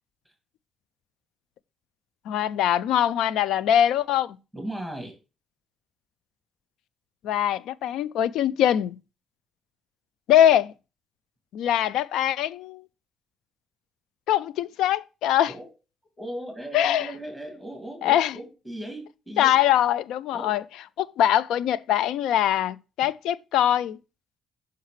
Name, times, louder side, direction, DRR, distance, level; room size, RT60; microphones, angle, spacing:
voice 1, 2.3-4.4 7.2-9.0 10.3-10.7 11.5-12.8 14.3-15.5 16.7-17.1 18.0-18.4 19.4-20.6 21.0-24.0, left 11 dB, 85° left, 0.3 m, -22 dB
voice 2, 4.5-5.1 15.5-15.6 16.2-19.6 20.3-20.5, right 1 dB, 5° left, 2.2 m, -37 dB
5.7 x 5.6 x 3.1 m
cardioid pair, 90°, 0 cm